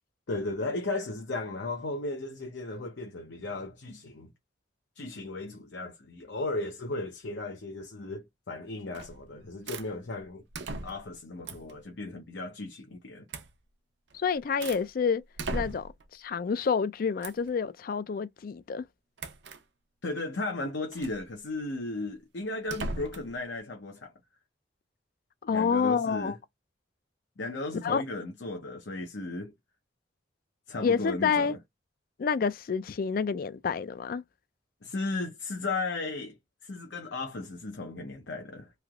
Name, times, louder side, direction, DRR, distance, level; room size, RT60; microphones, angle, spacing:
voice 1, 0.3-4.3 5.0-10.4 10.8-13.2 20.0-24.1 25.5-26.4 27.4-29.5 30.7-31.6 34.8-36.4 36.6-38.7, left 2 dB, 75° left, 0.7 m, -35 dB
sound 1, 8.9-9.3 9.7-9.9 10.5-11.1 11.4-11.8 13.3-13.5 14.1-14.9 15.4-16.0 17.2-17.5 19.2-19.6 20.9-21.2 22.6-23.3, right 3 dB, 70° right, 0.6 m, -38 dB
voice 2, 14.1-15.2 15.5-18.8 25.4-26.4 27.8-28.0 30.8-31.5 32.2-34.2, left 6 dB, 50° left, 0.3 m, -28 dB
3.2 x 2.9 x 2.3 m
head